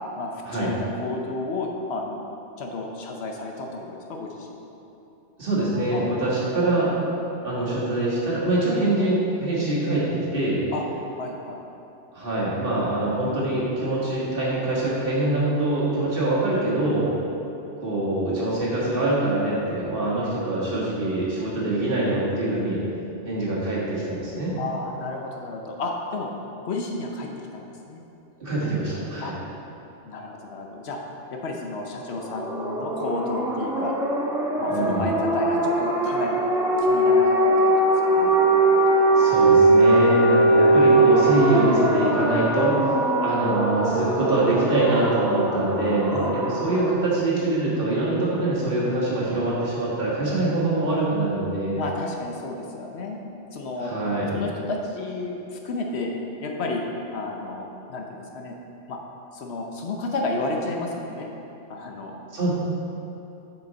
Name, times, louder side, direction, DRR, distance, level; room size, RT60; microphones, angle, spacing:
voice 1, 0.2-2.2 2.6-4.5 5.9-6.0 6.6-6.9 10.7-10.8 11.2-11.6 24.6-26.3 26.6-28.0 29.2-29.3 30.1-31.0 31.3-33.9 34.6-36.4 36.8-37.5 38.0-38.3 46.1-46.4 51.8-53.2 53.5-53.9 54.3-56.1 56.4-56.8 57.1-58.6 58.9-59.0 59.3-61.3 61.7-62.2, left 2 dB, 65° left, 1 dB, 1.0 m, -32 dB
voice 2, 5.4-6.9 7.4-10.6 12.1-17.1 17.8-22.8 23.3-24.5 28.4-29.3 34.7-35.2 39.2-42.8 43.2-51.8 53.8-54.4 62.3-62.5, right 2 dB, 50° right, -7 dB, 1.8 m, -24 dB
sound 1, 32.1-46.9, right 2 dB, 5° right, 0.6 m, -21 dB
7.2 x 6.1 x 3.9 m, 2.9 s
omnidirectional pair, 1.2 m